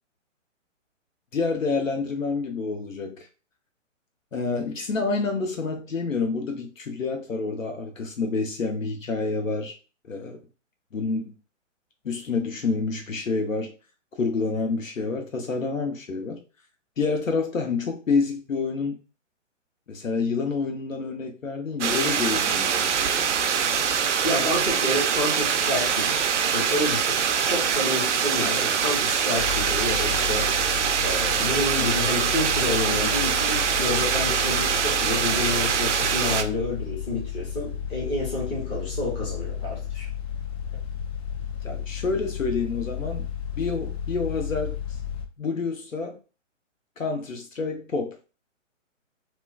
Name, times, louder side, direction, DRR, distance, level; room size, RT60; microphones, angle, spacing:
voice 1, 1.3-3.2 4.3-9.7 10.1-10.4 10.9-11.3 12.0-13.7 14.2-16.4 17.0-19.0 19.9-23.7 28.4-28.5 41.6-43.3 43.6-44.8 45.4-46.2 47.0-48.2, left 4 dB, 85° left, 0.9 m, -28 dB
sound 1, 21.8-36.4, right 7 dB, 65° right, 0.5 m, -24 dB
voice 2, 24.2-26.2 26.5-27.2 27.5-30.6 31.0-40.1, left 1 dB, 10° left, 0.5 m, -29 dB
sound 2, 29.3-45.3, left 8 dB, 60° left, 0.7 m, -33 dB
3.0 x 2.1 x 2.3 m
figure-of-eight pair, 130°, 38 cm